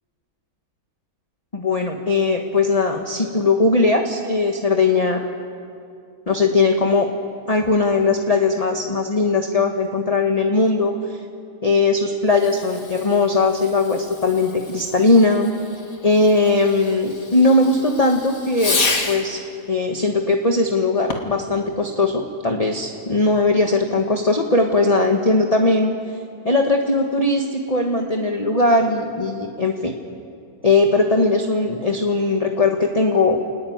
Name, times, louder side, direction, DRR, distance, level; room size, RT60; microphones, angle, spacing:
voice 1, 1.5-5.2 6.3-7.1 7.5-11.2 11.6-15.5 16.0-19.4 19.7-25.9 26.4-29.9 30.6-33.4, left 3 dB, 25° left, 2 dB, 1.4 m, -19 dB
Fireworks, 12.3-19.4 21.0-21.5, left 3 dB, 60° left, 2.5 m, -30 dB
28.5 x 19.5 x 9.4 m, 2.5 s
omnidirectional pair, 1.7 m